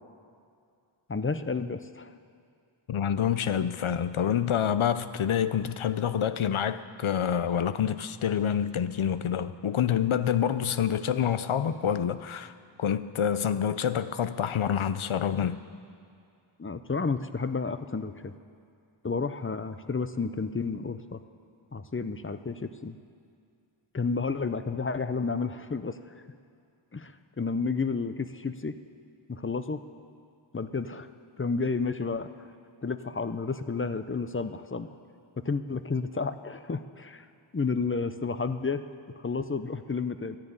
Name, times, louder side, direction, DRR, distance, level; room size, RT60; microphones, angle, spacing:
voice 1, 1.1-2.1 16.6-18.3 19.0-21.2 21.7-23.0 23.9-26.0 26.9-28.7 29.3-29.8 30.5-31.1 31.4-32.3 32.8-34.9 35.4-37.3 37.5-38.8 39.2-40.4, left 4 dB, 25° left, 11 dB, 0.6 m, -31 dB
voice 2, 2.9-12.5 12.8-15.6, left 8 dB, 75° left, 13 dB, 0.7 m, -27 dB
12.5 x 10.5 x 8.8 m, 2.4 s
wide cardioid pair, 70°, 49 cm